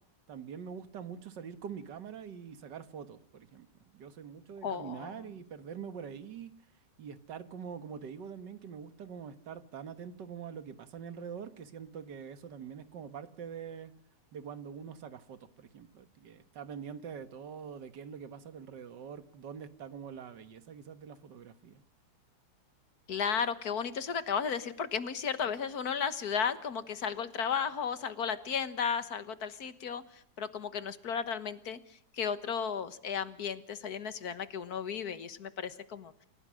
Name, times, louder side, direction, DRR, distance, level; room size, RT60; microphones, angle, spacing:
voice 1, 0.3-3.7 3.9-6.5 7.0-13.9 14.3-21.8, right 7 dB, 90° right, 12 dB, 2.0 m, -44 dB
voice 2, 4.6-5.3 23.1-36.1, left 7 dB, 65° left, 13 dB, 1.8 m, -34 dB
29.0 x 16.0 x 6.3 m, 0.71 s
omnidirectional pair, 1.8 m